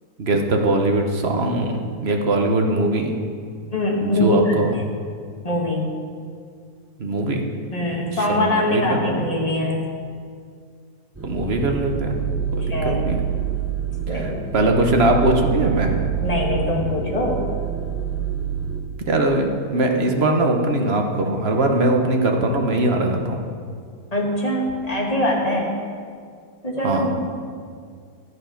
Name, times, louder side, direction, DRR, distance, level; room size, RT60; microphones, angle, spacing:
voice 1, 0.2-3.1 4.0-4.7 7.0-7.5 8.1-9.3 11.2-12.2 12.5-12.7 13.1-13.2 14.1-15.9 19.0-23.4 26.8-27.0, right 2 dB, 45° right, 3 dB, 1.1 m, -21 dB
voice 2, 3.7-4.5 5.4-6.0 7.7-9.8 12.6-13.1 14.1-14.4 16.2-17.5 24.1-25.7 26.6-27.3, left 1 dB, 25° left, -1 dB, 1.6 m, -23 dB
sound 1, 11.1-18.8, right 8 dB, 15° right, 0.6 m, -26 dB
11.5 x 8.0 x 5.8 m, 2.2 s
omnidirectional pair, 1.7 m